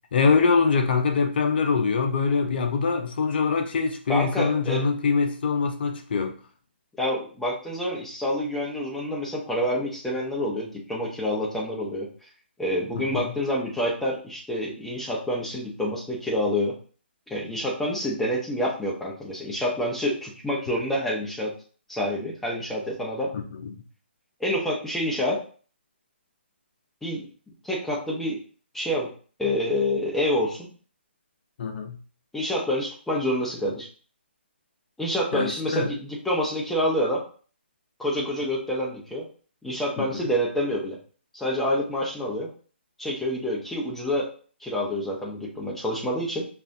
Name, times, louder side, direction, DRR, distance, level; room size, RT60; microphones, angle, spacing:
voice 1, 0.1-6.3 12.9-13.3 23.3-23.7 31.6-32.0 35.3-35.9 40.0-40.3, left 5 dB, 55° left, 0.8 m, -24 dB
voice 2, 4.1-4.8 7.0-12.1 12.6-16.7 17.3-21.5 21.9-23.3 24.4-25.4 27.0-27.3 27.6-28.4 28.7-29.1 29.4-30.7 32.3-33.9 35.0-37.2 38.0-39.2 39.6-41.0 41.3-42.5 43.0-44.3 44.6-46.5, equal, 5° left, 1.0 m, -27 dB
5.4 x 2.6 x 2.7 m
hypercardioid pair, 150°, 6 cm